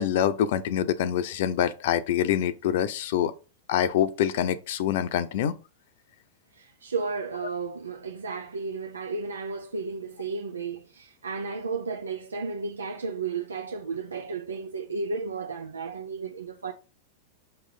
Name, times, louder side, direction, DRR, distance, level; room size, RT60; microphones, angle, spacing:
voice 1, 0.0-3.3 3.7-5.6, left 10 dB, 60° left, 0.7 m, -25 dB
voice 2, 6.5-16.7, right 4 dB, 90° right, 0.7 m, -33 dB
6.0 x 3.4 x 5.1 m
hypercardioid pair, 100°, 0 cm